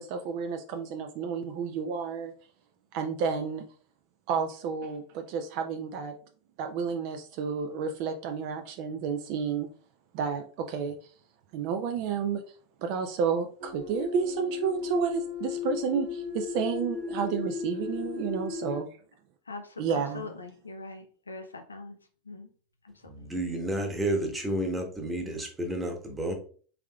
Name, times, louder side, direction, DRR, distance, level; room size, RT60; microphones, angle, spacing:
voice 1, 0.0-2.3 2.9-3.7 4.3-6.1 6.6-9.7 10.1-11.0 11.5-12.4 12.8-18.9 19.8-20.3, right 6 dB, 55° right, 0.5 m, -31 dB
sound 1, 13.6-18.8, left 6 dB, 70° right, 1.4 m, -35 dB
voice 2, 19.5-22.0 22.3-22.5 23.2-23.3, left 3 dB, 90° left, 0.5 m, -42 dB
voice 3, 23.1-26.3, right 1 dB, 15° right, 1.0 m, -31 dB
3.5 x 3.5 x 2.3 m
hypercardioid pair, 85°, 0 cm